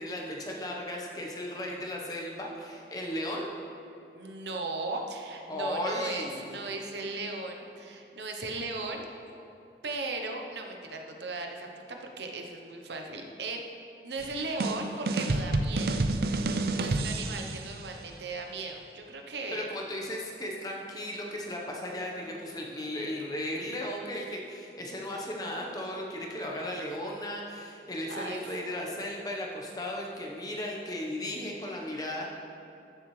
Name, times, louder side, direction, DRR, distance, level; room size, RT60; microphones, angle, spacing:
voice 1, 0.0-3.5 5.5-6.6 19.5-32.3, left 1 dB, 20° left, -1 dB, 1.0 m, -36 dB
voice 2, 4.1-9.0 9.8-13.6 14.0-16.0 16.7-19.7 28.1-28.5, right 3 dB, 80° right, 3 dB, 0.9 m, -37 dB
sound 1, 14.2-17.7, right 2 dB, 60° right, 0.4 m, -29 dB
15.0 x 7.1 x 3.3 m, 2.8 s
head